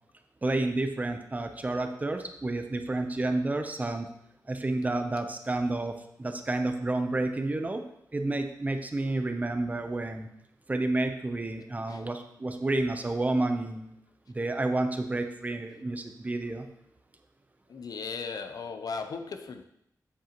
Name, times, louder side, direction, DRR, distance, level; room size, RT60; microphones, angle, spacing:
voice 1, 0.4-4.1 4.5-7.8 8.1-10.3 10.7-13.9 14.3-16.6, right 2 dB, 25° right, 6 dB, 0.6 m, -30 dB
voice 2, 17.7-19.7, left 5 dB, 70° left, 8 dB, 0.6 m, -37 dB
8.2 x 7.5 x 3.0 m, 0.76 s
wide cardioid pair, 165°, 7 cm